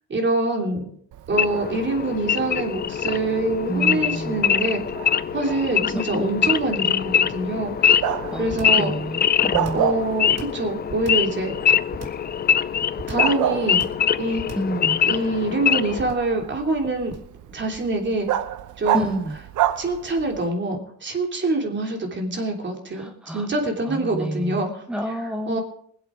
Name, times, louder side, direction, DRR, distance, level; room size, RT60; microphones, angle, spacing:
voice 1, 0.1-0.8 1.3-4.8 5.3-8.0 8.4-8.9 9.7-11.5 13.1-13.8 14.2-14.4 15.1-17.1 17.5-18.3 18.8-19.2 19.8-24.7 25.5-25.6, right 2 dB, 40° right, 2 dB, 3.2 m, -25 dB
Bark, 1.1-20.5, right 11 dB, 75° right, 0.9 m, -32 dB
Wild animals / Idling, 1.3-16.1, left 8 dB, 30° left, 0.4 m, -23 dB
voice 2, 3.7-4.4 5.8-6.5 8.3-9.9 14.6-15.1 18.9-19.4 22.9-23.5 23.8-25.6, right 1 dB, 5° right, 4 dB, 1.2 m, -29 dB
sound 1, 8.5-8.9 9.5-9.9 10.4-11.3 11.9-12.3 13.0-13.4 13.8-14.1 14.4-14.8 15.9-16.3 17.1-17.4, right 4 dB, 55° right, 2.3 m, -37 dB
20.5 x 8.1 x 5.0 m, 0.63 s
cardioid pair, 90°, 30 cm